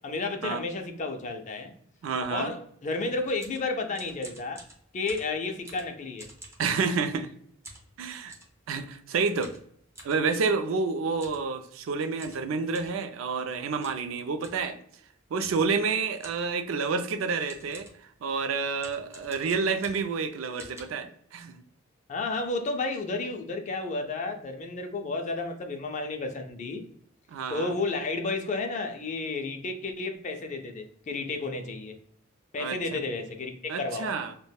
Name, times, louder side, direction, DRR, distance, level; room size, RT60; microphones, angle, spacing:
voice 1, 0.0-1.7 2.3-4.6 4.9-6.3 22.1-26.8 27.5-32.0 32.5-34.1, left 3 dB, 35° left, 0.4 m, -32 dB
voice 2, 2.0-2.5 6.6-7.3 8.0-8.3 8.7-9.5 10.0-14.8 15.3-17.9 18.2-21.6 27.3-27.8 32.6-33.0 33.7-34.3, right 4 dB, 75° right, 0.4 m, -29 dB
sound 1, 3.1-7.3 7.6-8.6 9.4-10.2 11.1-11.5 11.7-11.8 12.2-13.0 13.8-14.1 14.4-14.7 15.4-15.7 16.2-16.6 17.1-17.2 17.5-18.1 18.8-20.2 20.6-20.8, right 1 dB, 15° right, 0.6 m, -49 dB
3.3 x 2.1 x 2.2 m
head